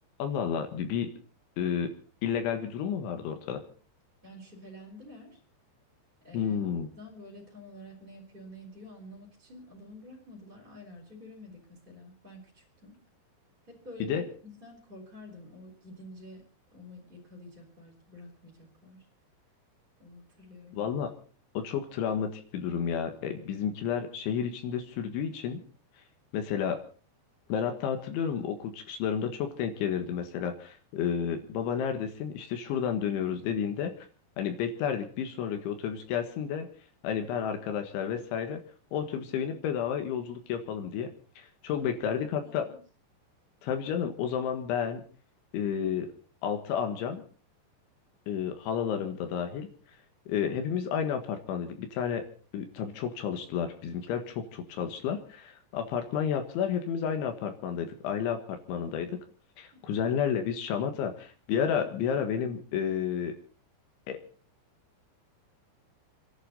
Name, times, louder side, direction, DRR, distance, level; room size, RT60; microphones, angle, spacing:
voice 1, 0.2-1.1 1.6-1.9 2.2-3.6 6.3-6.9 14.0-14.2 20.7-21.1 21.6-25.6 26.3-26.8 27.5-33.9 34.4-36.7 37.0-38.6 38.9-41.1 41.4-42.7 43.6-45.0 45.5-46.1 46.4-47.2 48.3-49.7 50.3-52.2 52.5-58.4 58.7-59.2 59.6-63.3 64.1-64.2, left 8 dB, 85° left, 6 dB, 4.0 m, -31 dB
voice 2, 4.2-5.4 6.2-12.9 13.7-16.4 16.7-19.0 20.0-20.8 41.7-42.8 59.7-60.0, left 1 dB, 10° right, -4 dB, 4.6 m, -49 dB
29.5 x 11.0 x 4.1 m, 0.39 s
omnidirectional pair, 5.3 m